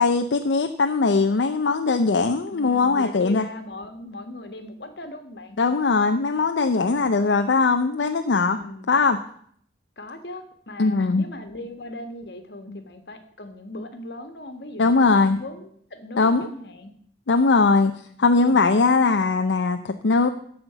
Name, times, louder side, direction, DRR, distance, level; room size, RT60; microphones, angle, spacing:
voice 1, 0.0-3.5 5.6-8.6 8.9-9.2 10.8-11.2 12.7-12.8 14.8-15.4 16.2-16.5 17.3-20.3, left 4 dB, 85° left, 6 dB, 0.6 m, -20 dB
voice 2, 2.5-5.6 6.7-7.1 8.5-8.9 10.0-16.9 18.4-18.7, left 1 dB, 65° left, 7 dB, 1.5 m, -39 dB
13.0 x 4.4 x 8.0 m, 0.63 s
head